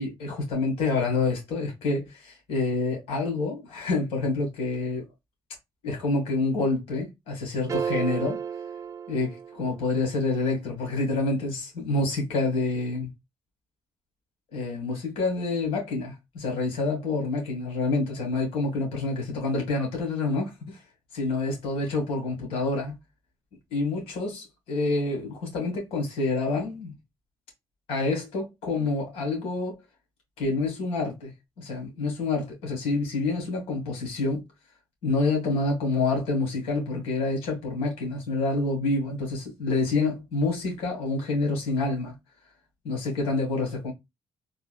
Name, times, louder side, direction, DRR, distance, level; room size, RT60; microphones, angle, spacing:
voice 1, 0.0-5.0 5.8-8.4 9.1-13.1 14.5-20.8 21.1-23.0 23.7-26.9 27.9-29.8 30.4-31.3 31.6-34.4 35.0-42.1 42.8-43.9, left 3 dB, 85° left, 1.9 m, -27 dB
sound 1, 7.7-10.0, right 7 dB, 35° right, 0.3 m, -32 dB
3.7 x 2.6 x 2.3 m
cardioid pair, 105°, 10 cm